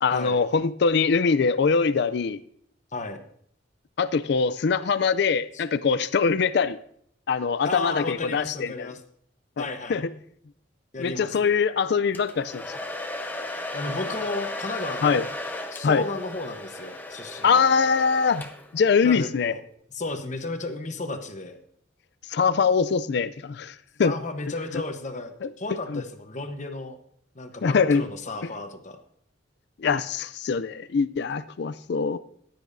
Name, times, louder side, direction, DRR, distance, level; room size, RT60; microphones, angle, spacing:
voice 1, 0.0-2.4 4.0-6.8 7.3-8.9 9.6-10.1 11.0-12.6 15.0-15.2 15.8-16.1 17.4-19.5 22.3-23.7 24.0-24.2 25.4-25.5 25.9-26.0 27.6-28.0 29.8-32.2, left 5 dB, 60° left, 15 dB, 0.4 m, -23 dB
voice 2, 7.6-9.0 9.6-10.0 10.9-11.5 13.7-15.3 15.7-17.7 19.0-19.6 19.9-21.6 24.0-27.0 27.3-29.0, left 2 dB, 40° left, 6 dB, 1.0 m, -33 dB
Domestic sounds home sounds, 12.1-18.8, left 1 dB, 10° left, 0.8 m, -35 dB
15.0 x 10.5 x 2.6 m, 0.65 s
head